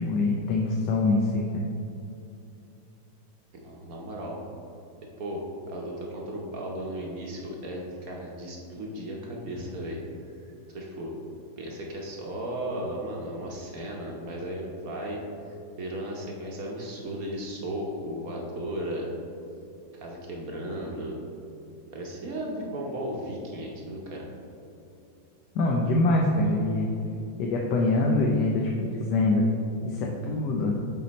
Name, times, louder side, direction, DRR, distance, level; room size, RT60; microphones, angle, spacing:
voice 1, 0.0-1.6 25.5-26.9 27.4-29.5 29.8-30.7, left 2 dB, 70° left, 0 dB, 1.1 m, -24 dB
voice 2, 3.5-4.4 5.2-10.0 10.7-11.1 11.6-15.2 15.5-19.1 19.9-21.2 21.9-24.3, right 1 dB, 60° right, -1 dB, 1.1 m, -35 dB
7.5 x 4.2 x 4.0 m, 2.7 s
omnidirectional pair, 2.1 m